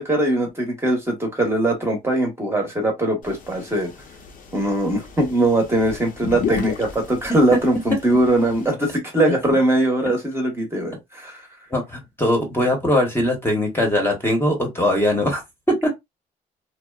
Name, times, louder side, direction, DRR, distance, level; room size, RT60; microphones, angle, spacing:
voice 1, 0.0-3.9 4.5-11.4, right 1 dB, 15° right, 0.9 m, -21 dB
sound 1, 3.2-8.7, left 6 dB, 55° left, 0.7 m, -34 dB
voice 2, 11.7-15.4 15.7-15.9, left 1 dB, 15° left, 0.9 m, -20 dB
2.8 x 2.0 x 2.2 m
cardioid pair, 110°, 17 cm